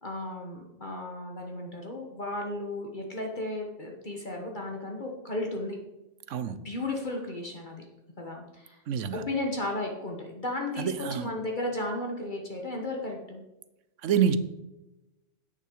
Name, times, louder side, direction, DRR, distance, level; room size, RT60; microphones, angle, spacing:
voice 1, 0.0-5.8 6.6-7.8 8.2-8.8 9.1-13.4, left 2 dB, 40° left, 1 dB, 1.4 m, -34 dB
voice 2, 8.9-9.2 10.8-11.3 14.0-14.4, right 8 dB, 90° right, 13 dB, 1.1 m, -27 dB
10.0 x 8.2 x 4.7 m, 1.0 s
omnidirectional pair, 1.2 m